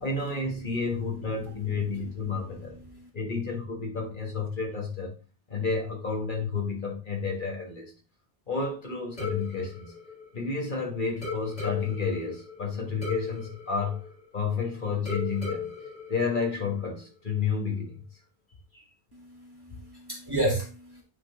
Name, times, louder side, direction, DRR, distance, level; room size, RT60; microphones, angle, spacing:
voice 1, 0.0-2.7 3.1-5.1 5.5-7.9 8.5-9.8 10.3-14.0 14.3-15.7 16.1-18.0 18.7-18.8, left 4 dB, 55° left, 0 dB, 1.6 m, -30 dB
sound 1, 9.2-10.8 11.2-14.6 15.1-17.0, left 4 dB, 85° left, 2.9 m, -38 dB
voice 2, 19.1-21.0, right 1 dB, 25° right, -2 dB, 1.8 m, -32 dB
8.7 x 3.7 x 3.5 m, 0.35 s
omnidirectional pair, 1.0 m